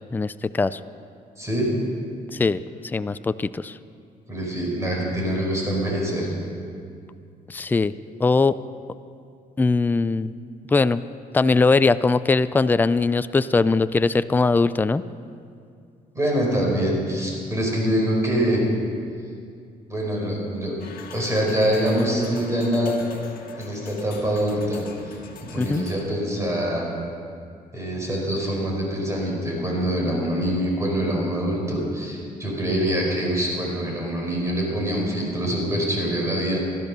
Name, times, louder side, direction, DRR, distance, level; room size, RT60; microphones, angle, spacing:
voice 1, 0.1-0.8 2.3-3.8 7.5-7.9 8.2-8.6 9.6-10.3 10.7-11.0 11.3-15.0 25.6-25.8, left 3 dB, 10° left, 14 dB, 0.3 m, -21 dB
voice 2, 1.4-1.7 4.3-6.3 16.1-18.6 19.9-20.8 21.1-23.0 23.6-25.2 25.5-26.9 27.7-36.6, equal, 20° right, -2 dB, 4.8 m, -24 dB
sound 1, 20.8-26.1, left 4 dB, 65° left, 1.7 m, -42 dB
15.0 x 12.5 x 6.6 m, 2.3 s
cardioid pair, 115°, 16 cm